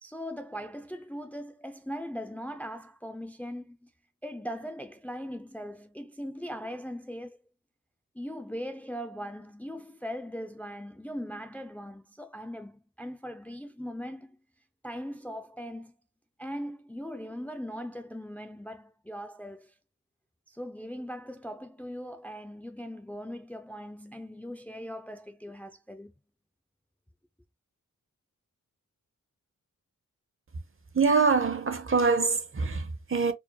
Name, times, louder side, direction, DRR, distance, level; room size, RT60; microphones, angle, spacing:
voice 1, 0.0-3.9 4.2-7.4 8.1-14.4 14.8-15.9 16.4-19.7 20.5-26.1, equal, 5° left, 0.5 m, -40 dB
voice 2, 30.9-33.3, right 4 dB, 40° right, 0.8 m, -24 dB
4.6 x 2.8 x 2.3 m
wide cardioid pair, 80°, 33 cm